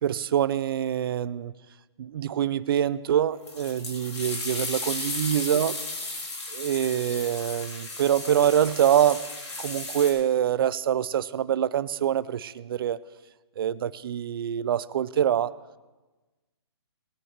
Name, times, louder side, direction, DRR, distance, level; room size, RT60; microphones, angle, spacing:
voice 1, 0.0-1.5 2.0-5.7 6.5-9.2 9.6-13.0 13.6-15.5, right 10 dB, 55° right, 17 dB, 0.5 m, -25 dB
sound 1, 3.5-10.1, left 2 dB, 80° left, 3.5 m, -35 dB
19.0 x 8.3 x 4.5 m, 1.2 s
hypercardioid pair, 145°, 14 cm